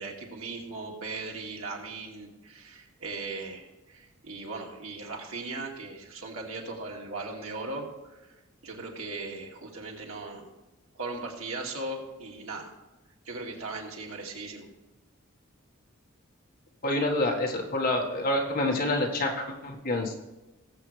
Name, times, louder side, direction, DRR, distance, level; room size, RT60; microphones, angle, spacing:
voice 1, 0.0-8.2 8.6-10.5 10.9-12.7 13.3-14.7, right 3 dB, 85° right, -1 dB, 2.4 m, -38 dB
voice 2, 16.8-20.2, left 1 dB, 45° left, 0 dB, 1.8 m, -27 dB
19.0 x 7.8 x 3.4 m, 1.1 s
head